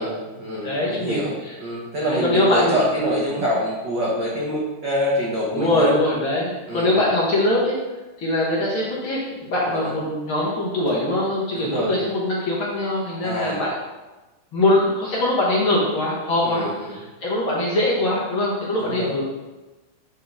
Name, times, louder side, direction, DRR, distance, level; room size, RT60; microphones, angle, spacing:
voice 1, 0.0-1.3 1.6-5.9 6.7-7.0 9.7-9.9 11.5-11.9 13.2-13.6 16.4-16.9 18.8-19.1, equal, 80° right, -5 dB, 1.0 m, -25 dB
voice 2, 0.6-1.5 2.0-2.8 5.5-7.8 8.2-13.7 14.5-19.2, left 1 dB, 55° left, -6 dB, 1.7 m, -22 dB
8.9 x 4.2 x 3.6 m, 1.1 s
omnidirectional pair, 3.6 m